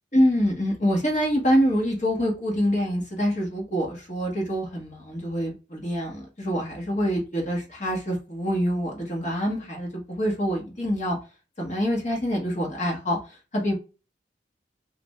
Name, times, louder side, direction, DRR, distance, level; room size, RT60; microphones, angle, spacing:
voice 1, 0.1-11.2 11.6-13.7, equal, 40° left, -1 dB, 1.1 m, -25 dB
3.3 x 2.5 x 3.1 m, 0.32 s
head